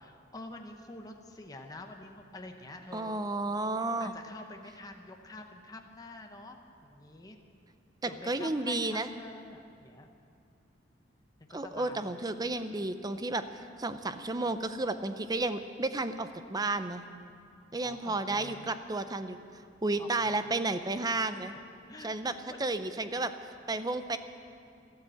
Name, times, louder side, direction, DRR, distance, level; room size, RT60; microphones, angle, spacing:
voice 1, 0.0-3.2 4.0-7.4 8.0-10.2 11.5-12.1 17.8-18.7 20.0-20.4 21.9-22.7, left 2 dB, 20° left, 3 dB, 1.0 m, -47 dB
voice 2, 2.9-4.1 8.0-9.1 11.5-13.4 13.8-17.0 17.7-19.4 19.8-21.5 22.0-22.3 22.6-23.3 23.7-24.2, right 2 dB, 20° right, 10 dB, 0.6 m, -32 dB
13.5 x 13.0 x 7.8 m, 2.4 s
head